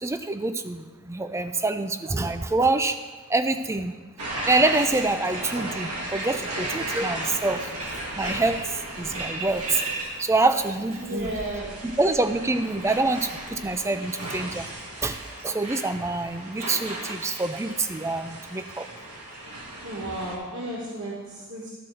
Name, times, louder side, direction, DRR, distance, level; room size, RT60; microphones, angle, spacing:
voice 1, 0.0-3.0 3.3-3.9 4.5-7.6 8.2-9.8 10.2-11.3 11.8-14.7 15.0-15.2 15.4-18.9, right 2 dB, 10° right, 9 dB, 0.3 m, -26 dB
sound 1, 4.2-20.4, right 1 dB, 90° right, 1.7 m, -35 dB
voice 2, 11.0-11.7 19.8-21.7, right 1 dB, 55° right, -5 dB, 1.4 m, -33 dB
12.5 x 4.4 x 6.2 m, 1.3 s
head